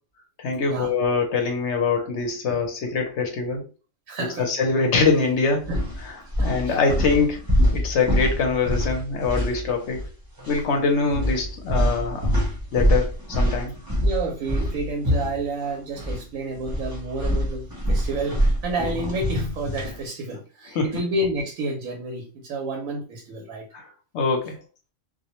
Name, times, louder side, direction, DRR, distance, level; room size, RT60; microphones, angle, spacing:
voice 1, 0.4-3.6 4.4-5.7 6.4-7.4 7.7-10.0 10.5-12.3 12.7-13.7 20.7-20.9 23.7-24.6, left 4 dB, 65° left, 3 dB, 0.8 m, -23 dB
voice 2, 4.1-4.5 5.7-5.8 6.4-6.8 14.0-23.7, right 2 dB, 90° right, 1 dB, 1.0 m, -30 dB
sound 1, 5.0-5.2 5.6-10.1 10.4-10.6 11.1-16.2 16.5-20.0, equal, 25° right, 0.5 m, -25 dB
2.4 x 2.0 x 2.8 m, 0.35 s
omnidirectional pair, 1.4 m